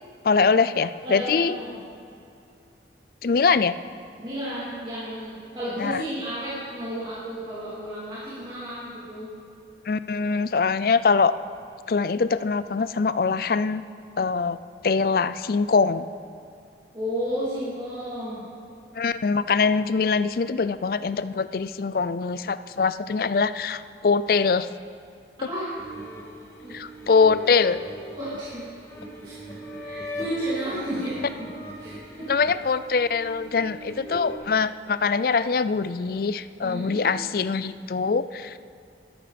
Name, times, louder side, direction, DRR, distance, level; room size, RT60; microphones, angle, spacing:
voice 1, 0.2-1.5 3.2-3.7 5.8-6.0 9.9-11.3 11.9-13.8 14.2-14.6 14.8-16.1 18.9-24.7 26.7-27.8 32.3-38.6, left 5 dB, 55° left, 14 dB, 0.4 m, -23 dB
voice 2, 1.0-1.8 4.2-9.3 16.9-18.4 25.4-25.7 26.6-26.7 28.1-28.7 29.2-31.3 31.8-32.3 36.6-37.0, equal, 25° right, -11 dB, 3.1 m, -32 dB
sound 1, 25.8-34.4, equal, 15° left, 2.1 m, -40 dB
13.0 x 12.5 x 5.1 m, 2.6 s
head